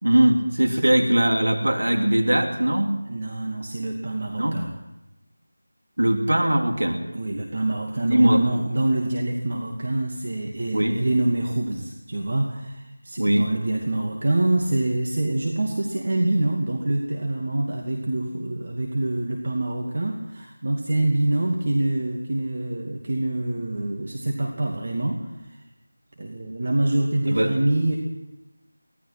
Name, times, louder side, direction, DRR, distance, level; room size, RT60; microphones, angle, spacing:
voice 1, 0.0-2.9 4.4-4.6 6.0-7.0 8.1-8.4 10.7-11.0 13.2-13.5 27.3-27.5, right 1 dB, 85° right, 3 dB, 3.1 m, -20 dB
voice 2, 3.1-4.7 7.1-25.6 26.2-28.0, right 2 dB, 45° right, 1 dB, 2.5 m, -25 dB
24.5 x 17.5 x 6.1 m, 0.94 s
figure-of-eight pair, 170°, 0 cm